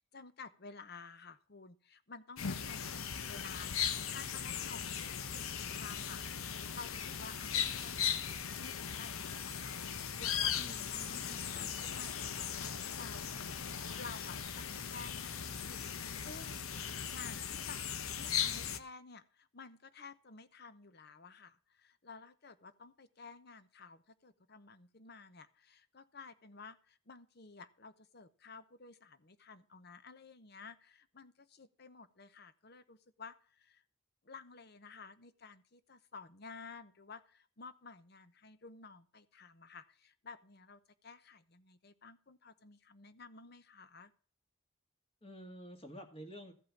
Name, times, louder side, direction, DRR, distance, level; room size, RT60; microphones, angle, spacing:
voice 1, 0.0-5.0 5.3-8.3 8.6-10.6 10.9-13.3 14.0-16.6 17.1-17.8 18.1-33.8 34.2-44.1, left 4 dB, 50° left, 13 dB, 0.9 m, -53 dB
sound 1, 2.4-18.8, left 8 dB, 90° left, 0.9 m, -38 dB
voice 2, 10.5-11.7 45.2-46.5, equal, 25° left, 5 dB, 1.9 m, -50 dB
14.5 x 5.5 x 7.2 m, 0.43 s
head